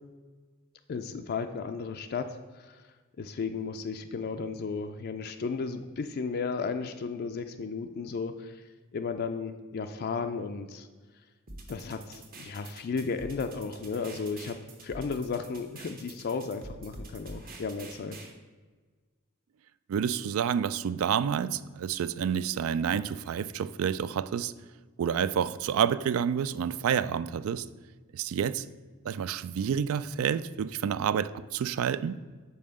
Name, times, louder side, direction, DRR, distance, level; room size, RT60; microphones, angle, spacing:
voice 1, 0.9-2.8 3.2-8.6 8.9-10.9 11.7-18.2, left 5 dB, 45° left, 7 dB, 0.4 m, -34 dB
sound 1, 11.5-18.3, right 2 dB, 45° right, 1.1 m, -46 dB
voice 2, 19.9-24.5 25.0-27.7 28.1-28.6 29.1-32.2, right 8 dB, 70° right, 16 dB, 0.3 m, -29 dB
5.5 x 4.8 x 6.3 m, 1.4 s
head